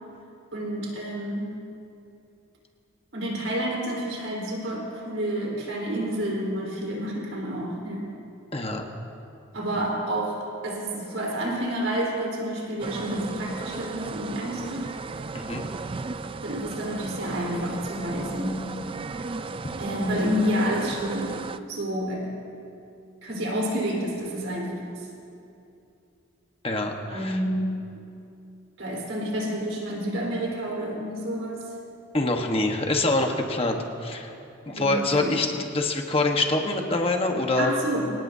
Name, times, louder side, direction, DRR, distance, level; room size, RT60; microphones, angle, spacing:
voice 1, 0.5-1.6 3.1-8.1 9.5-14.9 16.4-18.7 19.3-19.4 19.8-21.4 21.7-22.4 23.2-24.9 27.1-27.8 28.8-31.7 34.7-35.4 37.6-38.1, equal, 75° right, -3 dB, 4.2 m, -29 dB
voice 2, 8.5-8.8 15.3-15.6 26.6-27.4 32.1-34.3 34.7-37.7, left 2 dB, 30° left, 3 dB, 1.2 m, -25 dB
sound 1, 12.8-21.6, right 3 dB, 25° right, 0.3 m, -35 dB
26.0 x 18.0 x 2.8 m, 2.7 s
head